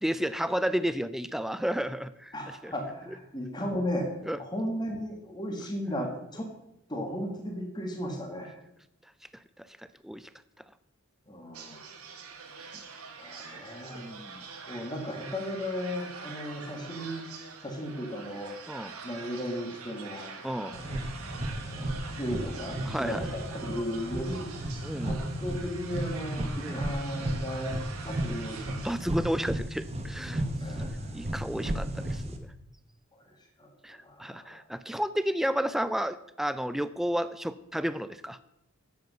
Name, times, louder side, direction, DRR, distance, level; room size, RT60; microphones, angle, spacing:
voice 1, 0.0-2.3 2.6-2.7 4.3-4.4 9.6-10.3 13.9-14.4 18.7-18.9 20.4-20.8 22.9-23.3 24.8-25.2 26.6-26.9 28.8-30.4 31.1-32.5 33.8-38.4, equal, ahead, 14 dB, 0.3 m, -32 dB
voice 2, 2.3-6.5 6.9-8.6 11.3-11.8 13.2-14.1 14.6-17.2 17.6-18.5 19.0-21.0 21.3-24.5 25.0-27.8 28.0-29.3 30.6-31.2 33.1-33.3 33.6-34.6, equal, 20° left, 2 dB, 1.7 m, -36 dB
sound 1, 11.5-28.9, right 5 dB, 85° right, 1.3 m, -45 dB
sound 2, 20.7-32.4, right 1 dB, 30° right, 0.9 m, -34 dB
9.2 x 7.9 x 5.4 m, 0.85 s
head